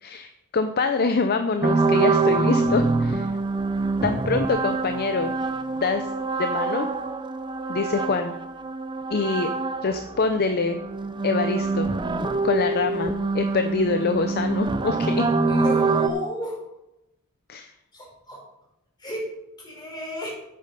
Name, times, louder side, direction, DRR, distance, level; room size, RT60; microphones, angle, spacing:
voice 1, 0.0-3.3 4.0-5.3 5.8-6.1 6.4-6.9 7.7-8.3 9.1-9.5 9.8-10.8 11.2-11.9 12.4-15.2 17.5-17.7, left 4 dB, 45° left, 8 dB, 0.6 m, -25 dB
sound 1, 1.6-10.2 10.5-16.1, right 3 dB, 20° right, 0.5 m, -25 dB
voice 2, 15.5-16.6 17.9-18.4 19.0-19.3 19.6-20.3, equal, 20° left, -3 dB, 4.5 m, -32 dB
9.9 x 8.6 x 5.3 m, 0.88 s
head